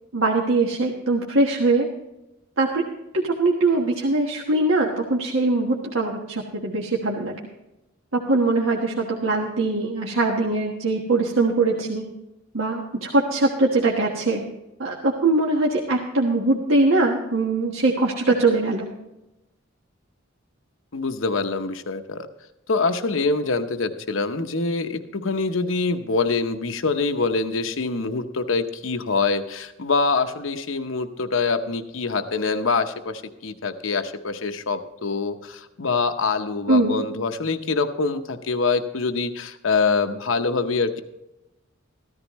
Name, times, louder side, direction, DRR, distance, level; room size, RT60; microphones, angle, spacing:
voice 1, 0.1-1.9 2.6-2.8 3.1-7.3 8.3-12.0 12.5-14.4 14.8-18.9 36.7-37.0, right 2 dB, 80° right, -1 dB, 1.4 m, -22 dB
voice 2, 20.9-22.3 22.7-41.0, left 4 dB, 80° left, 8 dB, 0.9 m, -25 dB
14.5 x 13.5 x 3.1 m, 0.94 s
head